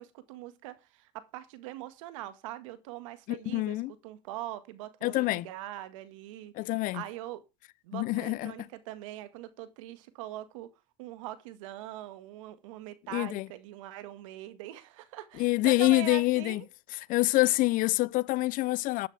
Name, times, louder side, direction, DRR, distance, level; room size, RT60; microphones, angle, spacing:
voice 1, 0.0-7.4 7.8-10.7 11.0-16.7, right 14 dB, 85° right, 1.8 m, -42 dB
voice 2, 3.3-3.9 5.0-5.5 6.5-7.0 7.9-8.7 13.1-13.5 15.4-16.6 17.1-19.1, left 19 dB, 60° left, 0.6 m, -26 dB
14.0 x 10.5 x 3.5 m
supercardioid pair, 100°, 16 cm